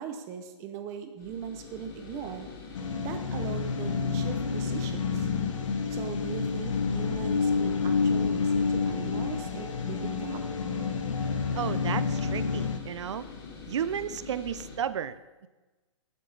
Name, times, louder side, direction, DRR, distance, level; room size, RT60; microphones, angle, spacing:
voice 1, 0.0-2.5 3.0-5.3 5.9-10.4, right 7 dB, 20° right, 7 dB, 0.6 m, -39 dB
sound 1, 1.2-14.8, left 5 dB, 40° left, 2.3 m, -44 dB
sound 2, 2.7-12.8, left 5 dB, 85° left, 1.1 m, -29 dB
voice 2, 11.5-13.3 13.7-15.5, right 8 dB, 65° right, 14 dB, 0.6 m, -33 dB
15.0 x 7.6 x 3.3 m, 1.2 s
hypercardioid pair, 165°, 16 cm